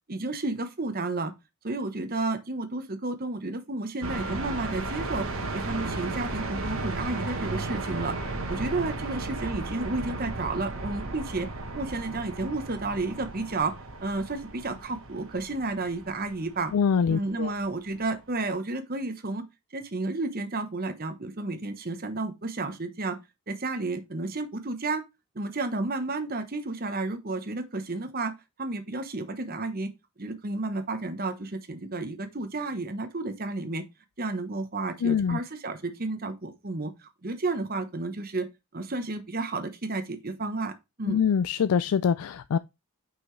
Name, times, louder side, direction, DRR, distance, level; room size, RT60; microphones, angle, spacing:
voice 1, 0.1-1.3 1.6-5.3 5.5-8.2 8.5-11.5 11.7-13.7 14.0-16.7 17.1-19.4 19.7-23.2 23.5-25.0 25.3-28.3 28.6-29.9 30.2-33.8 34.2-36.9 37.2-38.5 38.7-40.7 41.0-41.2, right 3 dB, 40° right, 1.0 m, -31 dB
sound 1, 4.0-18.0, right 2 dB, 60° right, 1.3 m, -35 dB
voice 2, 16.7-17.5 35.0-35.4 41.1-42.6, left 6 dB, 75° left, 0.4 m, -24 dB
6.2 x 5.7 x 3.2 m
head